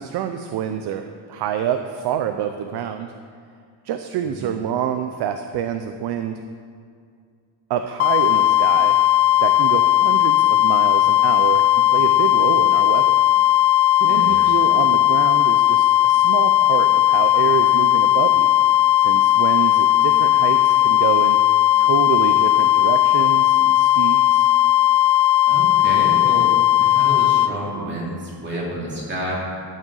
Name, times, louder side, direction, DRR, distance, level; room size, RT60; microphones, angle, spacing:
voice 1, 0.0-3.1 3.8-6.4 7.7-9.0 9.4-13.2 14.0-18.6 19.0-21.4 21.8-24.5, right 9 dB, 55° right, 7 dB, 0.6 m, -27 dB
sound 1, 8.0-27.5, left 13 dB, 85° left, 0.5 m, -16 dB
voice 2, 14.1-14.5 25.5-26.5 26.8-29.3, right 1 dB, 20° right, -5 dB, 2.7 m, -30 dB
12.5 x 6.5 x 6.4 m, 2.2 s
cardioid pair, 170°, 49 cm